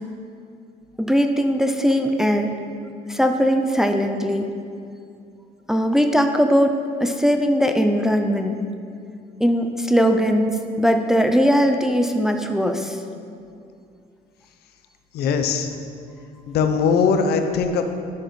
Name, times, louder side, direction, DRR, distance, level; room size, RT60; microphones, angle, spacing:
voice 1, 1.0-2.5 3.1-4.5 5.7-8.6 9.4-13.0, equal, 5° right, 4 dB, 0.5 m, -20 dB
voice 2, 15.1-15.7 16.5-17.8, left 5 dB, 70° left, 6 dB, 0.7 m, -20 dB
10.5 x 6.2 x 3.2 m, 2.4 s
cardioid pair, 110°, 17 cm